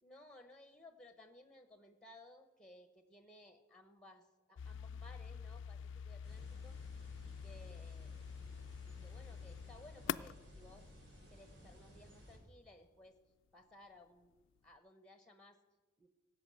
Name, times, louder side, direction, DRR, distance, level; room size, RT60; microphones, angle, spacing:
voice 1, 0.0-8.1 8.4-10.9 11.3-13.2 13.5-14.3 14.6-15.6 16.0-16.1, left 1 dB, 5° left, 7 dB, 0.9 m, -60 dB
sound 1, 4.6-11.5, left 7 dB, 75° left, 0.3 m, -46 dB
sound 2, 6.2-12.4, equal, 70° right, 3.8 m, -58 dB
16.5 x 7.6 x 6.3 m, 1.2 s
head